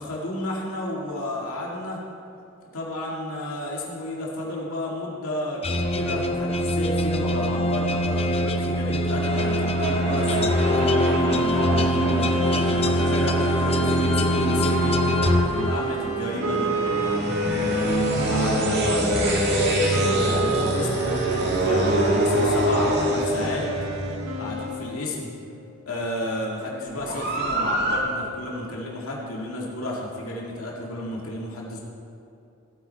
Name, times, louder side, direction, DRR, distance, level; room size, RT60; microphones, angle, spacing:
voice 1, 0.0-2.0 2.7-13.5 13.7-15.0 15.5-16.7 18.3-23.7 24.4-25.3 25.9-31.8, left 1 dB, 85° left, -3 dB, 2.1 m, -32 dB
sound 1, 5.6-16.3, equal, 30° left, 0.6 m, -23 dB
sound 2, 9.2-24.8 26.9-28.0, right 1 dB, 50° right, 2.0 m, -26 dB
Wind instrument woodwind instrument, 12.1-25.5, right 1 dB, 75° right, 1.0 m, -30 dB
16.0 x 8.8 x 4.6 m, 2.6 s
head